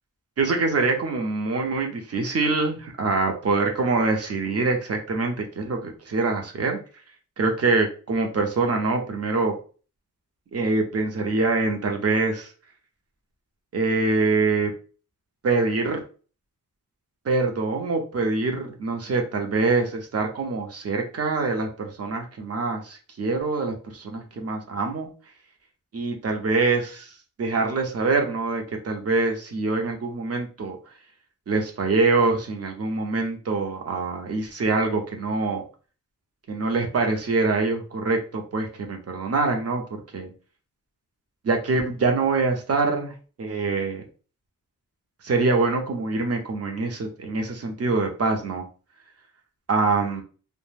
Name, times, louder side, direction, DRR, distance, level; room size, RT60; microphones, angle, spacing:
voice 1, 0.4-6.8 7.4-9.6 10.5-12.5 13.7-14.7 15.4-16.0 17.3-25.1 25.9-27.1 27.4-30.8 31.5-35.6 36.5-40.3 41.4-43.1 43.4-44.0 45.2-48.6 49.7-50.2, right 3 dB, 45° right, 3 dB, 0.6 m, -24 dB
2.3 x 2.1 x 3.2 m, 0.37 s
wide cardioid pair, 125°, 34 cm